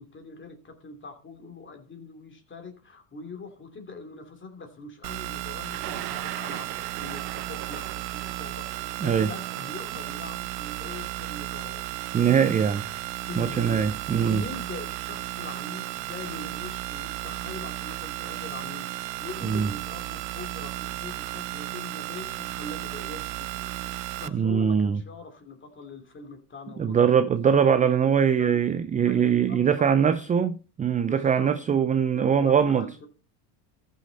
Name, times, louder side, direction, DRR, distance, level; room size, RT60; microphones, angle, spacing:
voice 1, 0.0-11.8 13.2-13.8 14.1-27.2 27.6-27.7 28.4-28.7 29.0-29.8 30.2-30.3 31.0-31.5 32.1-33.1, left 3 dB, 25° left, 2.8 m, -43 dB
sound 1, 5.0-24.3, right 18 dB, 80° right, 0.8 m, -34 dB
Thunder, 5.6-11.6 12.6-12.7 13.8-14.0 14.4-14.8, right 11 dB, 50° right, 1.3 m, -41 dB
voice 2, 12.1-12.8 13.4-14.4 19.4-19.7 24.3-25.0 26.8-32.9, right 7 dB, 15° right, 0.4 m, -22 dB
14.0 x 6.5 x 4.0 m
supercardioid pair, 105°, 48 cm